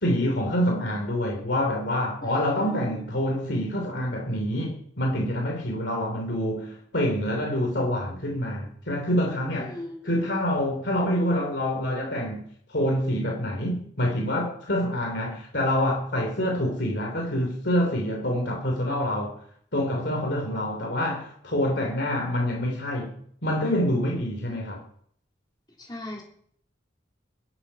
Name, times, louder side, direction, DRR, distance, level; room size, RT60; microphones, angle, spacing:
voice 1, 0.0-9.8 10.0-12.4 12.7-19.4 19.7-24.8, left 1 dB, 60° left, 3.1 m, -26 dB
voice 2, 2.2-3.1 9.6-10.1 25.8-26.2, left 1 dB, 20° left, 3.2 m, -39 dB
23.5 x 8.1 x 5.6 m
head